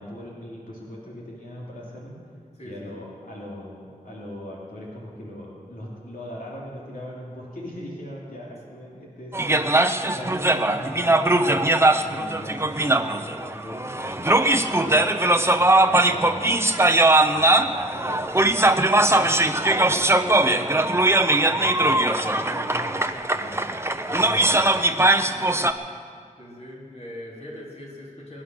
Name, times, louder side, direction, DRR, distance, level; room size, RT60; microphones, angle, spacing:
voice 1, 0.0-2.2 2.6-11.7 12.0-15.1 15.5-16.8 17.2-23.0 23.3-23.7 24.0-24.9, left 1 dB, 85° left, -5 dB, 3.0 m, -39 dB
voice 2, 2.6-3.1 25.2-25.6 26.4-28.4, left 1 dB, 50° left, -4 dB, 3.7 m, -41 dB
sound 1, 9.3-25.7, right 2 dB, 20° right, 0.8 m, -20 dB
23.0 x 10.0 x 6.3 m, 2.1 s
wide cardioid pair, 70°, 14 cm